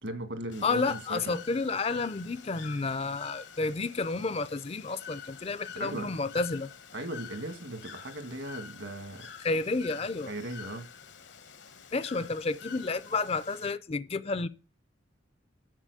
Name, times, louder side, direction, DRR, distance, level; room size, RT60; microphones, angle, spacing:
voice 1, 0.0-1.4 5.8-6.1 6.9-9.3 10.3-10.9, right 1 dB, 70° right, 2.0 m, -38 dB
Bird / Water, 0.5-13.7, left 7 dB, 65° left, 0.9 m, -47 dB
voice 2, 0.6-6.7 9.4-10.3 11.9-14.5, left 3 dB, 30° left, 0.4 m, -31 dB
7.4 x 6.9 x 8.2 m
head